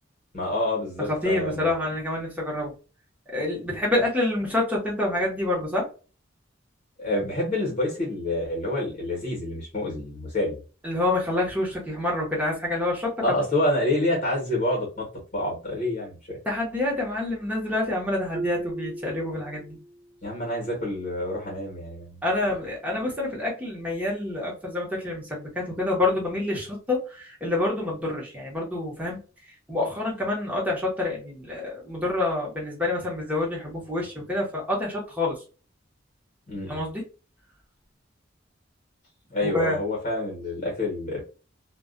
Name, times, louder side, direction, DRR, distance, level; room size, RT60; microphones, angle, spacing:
voice 1, 0.3-1.7 7.0-10.6 13.2-15.1 15.3-16.4 20.2-22.2 36.5-36.8 39.3-41.2, left 1 dB, 40° left, -2 dB, 1.1 m, -27 dB
voice 2, 1.0-2.7 3.3-5.9 10.8-13.3 16.5-19.8 22.2-29.2 29.7-35.4 36.7-37.0 39.4-39.8, left 2 dB, 10° right, -3 dB, 1.0 m, -27 dB
Marimba xylophone, 18.3-20.1, right 1 dB, 40° right, 0.3 m, -35 dB
2.4 x 2.2 x 2.4 m, 0.35 s
head